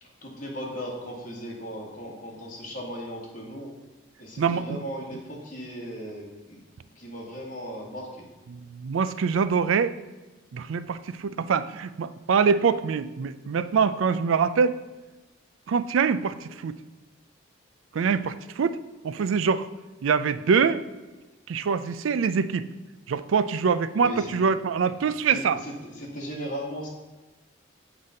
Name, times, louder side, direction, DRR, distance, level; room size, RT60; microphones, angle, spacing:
voice 1, 0.2-3.7 4.2-6.6 6.9-8.2 19.1-19.3 23.9-24.3 25.3-26.9, equal, 40° left, -3 dB, 1.9 m, -37 dB
voice 2, 4.4-4.8 8.5-9.9 10.5-14.8 15.7-16.7 17.9-18.8 19.0-19.7 20.0-20.8 21.5-22.7 23.1-25.6, right 6 dB, 80° right, 14 dB, 0.4 m, -24 dB
7.1 x 4.1 x 6.3 m, 1.1 s
head